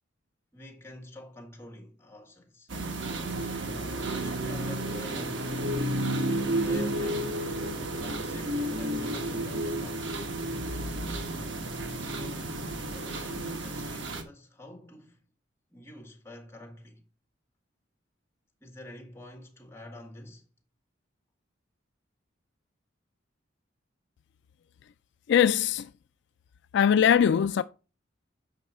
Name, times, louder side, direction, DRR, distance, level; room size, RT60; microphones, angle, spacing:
voice 1, 0.5-2.7 3.4-5.5 6.6-10.1 11.7-12.6 12.9-15.2 15.7-17.1 18.6-20.4, left 1 dB, 15° left, 2.0 m, -47 dB
sound 1, 2.7-14.2, right 1 dB, 70° right, 1.3 m, -32 dB
voice 2, 25.3-25.9 26.7-27.6, left 8 dB, 60° left, 0.3 m, -21 dB
7.1 x 5.5 x 4.2 m
head